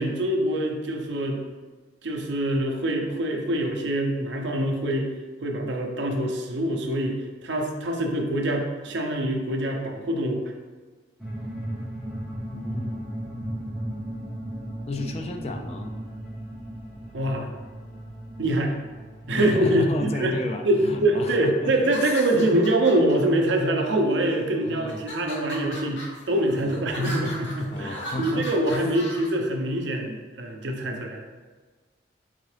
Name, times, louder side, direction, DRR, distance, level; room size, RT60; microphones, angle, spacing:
voice 1, 0.0-1.4 2.0-5.1 5.4-10.5 17.1-17.5 18.4-18.8 19.3-20.3 20.6-31.3, right 1 dB, 80° right, 2 dB, 0.6 m, -24 dB
sound 1, 11.2-20.4, right 1 dB, 5° right, 1.5 m, -36 dB
voice 2, 12.5-13.0 14.9-15.9 19.4-21.8 22.0-22.2 24.6-25.0 26.6-26.7 27.7-28.5, left 2 dB, 35° left, 4 dB, 0.3 m, -33 dB
sound 2, 21.8-23.1 23.9-24.4 24.9-29.3, left 1 dB, 85° left, 1.2 m, -38 dB
3.9 x 3.6 x 3.2 m, 1.3 s
head